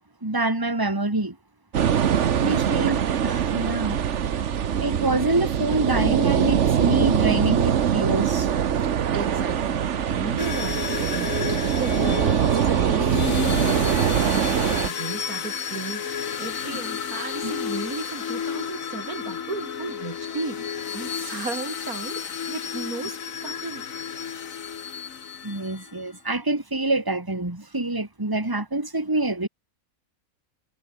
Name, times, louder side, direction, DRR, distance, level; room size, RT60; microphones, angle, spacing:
voice 1, 0.2-1.4 2.4-4.0 4.8-8.5 17.4-17.5 25.4-29.5, right 2 dB, 15° right, 2.6 m, -26 dB
sound 1, 1.7-14.9, right 8 dB, 60° right, 1.2 m, -23 dB
voice 2, 2.4-2.9 9.1-13.5 14.1-23.9, right 4 dB, 90° right, 3.5 m, -35 dB
sound 2, 10.4-26.0, left 7 dB, 70° left, 1.7 m, -32 dB
omnidirectional pair, 1.5 m